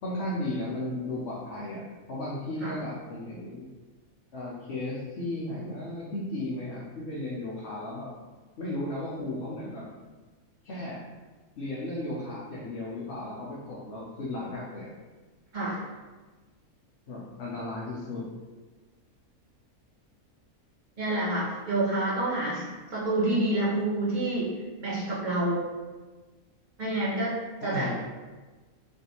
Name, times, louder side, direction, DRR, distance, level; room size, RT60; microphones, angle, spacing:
voice 1, 0.0-1.8 2.1-3.7 4.3-8.1 8.6-9.8 10.6-11.0 11.6-14.9 17.1-18.2 27.6-28.0, left 1 dB, 60° left, -6 dB, 0.8 m, -35 dB
voice 2, 21.0-25.6 26.8-27.3 27.6-27.9, right 1 dB, 40° right, -7 dB, 0.9 m, -28 dB
3.4 x 2.8 x 2.8 m, 1.3 s
omnidirectional pair, 1.5 m